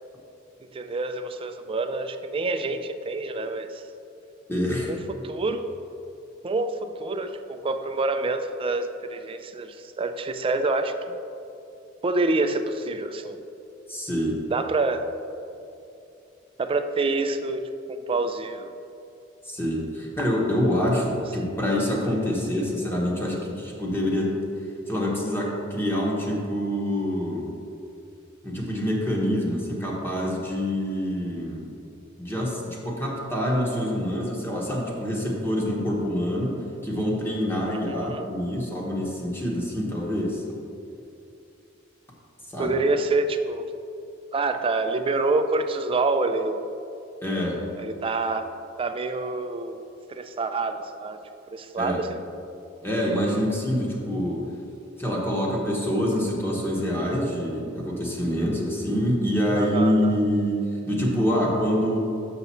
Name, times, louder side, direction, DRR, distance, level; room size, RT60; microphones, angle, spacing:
voice 1, 0.7-3.8 4.9-5.0 5.2-5.7 6.4-10.9 12.0-13.4 14.5-15.0 16.6-17.6 17.9-18.7 37.7-38.3 42.6-43.7 44.3-46.6 47.8-48.5 48.8-49.8 50.1-51.2 51.5-52.2 59.5-60.2, right 3 dB, 25° right, 8 dB, 0.3 m, -27 dB
voice 2, 4.5-4.9 13.9-14.4 19.4-24.4 24.9-27.5 28.4-31.8 32.2-40.4 42.5-42.7 47.2-47.6 51.8-52.0 52.8-54.4 55.0-62.0, equal, 10° left, -3 dB, 1.2 m, -26 dB
6.7 x 5.9 x 4.2 m, 2.7 s
head